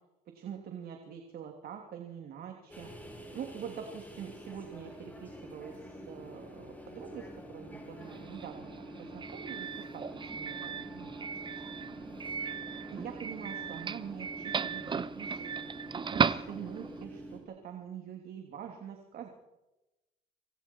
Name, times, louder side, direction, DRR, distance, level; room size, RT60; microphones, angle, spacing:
voice 1, 0.3-11.1 11.8-12.2 12.9-15.5 16.1-19.3, right 8 dB, 65° right, 3 dB, 3.1 m, -45 dB
sound 1, 2.7-17.4, right 1 dB, 10° left, 7.7 m, -46 dB
Doorbell, 8.0-17.0, right 6 dB, 30° right, 0.8 m, -36 dB
27.0 x 26.0 x 4.7 m, 1.0 s
cardioid pair, 110°, 17 cm